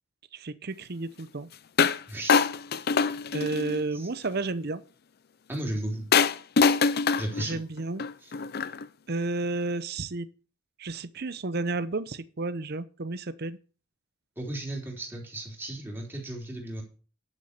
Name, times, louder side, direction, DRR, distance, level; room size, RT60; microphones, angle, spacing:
voice 1, 0.3-1.5 3.3-4.8 7.4-8.1 9.1-10.3 10.8-13.6, right 3 dB, 50° right, 0.7 m, -32 dB
sound 1, 1.8-2.0 2.3-3.8 6.1-8.8, left 5 dB, 50° left, 0.5 m, -24 dB
voice 2, 2.1-2.4 3.9-4.1 5.5-6.1 7.2-7.6 8.2-8.3 14.4-16.8, right 1 dB, 10° right, 3.5 m, -35 dB
11.5 x 6.5 x 6.7 m
head